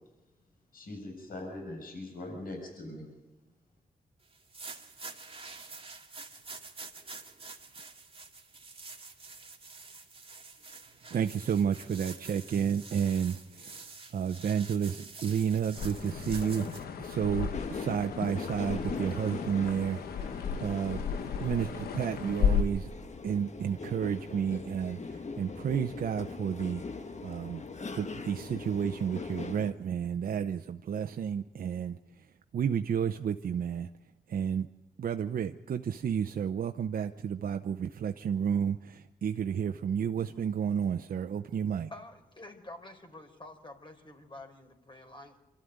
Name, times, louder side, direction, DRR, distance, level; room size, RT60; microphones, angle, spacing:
voice 1, 0.7-3.1, left 2 dB, 70° left, 2 dB, 7.4 m, -41 dB
sound 1, 4.3-16.8, right 4 dB, 40° right, 2.1 m, -47 dB
voice 2, 11.1-21.0 21.4-22.9 23.2-27.6 27.9-33.9 34.3-34.7 35.0-41.9, right 8 dB, 70° right, 7 dB, 0.7 m, -31 dB
sound 2, 15.8-22.6, left 7 dB, 90° left, 1.3 m, -34 dB
sound 3, 17.5-29.7, left 4 dB, 50° left, 1.5 m, -41 dB
voice 3, 41.9-45.4, left 2 dB, 30° left, 3 dB, 4.4 m, -48 dB
26.0 x 13.0 x 9.4 m, 1.1 s
cardioid pair, 50°, 15 cm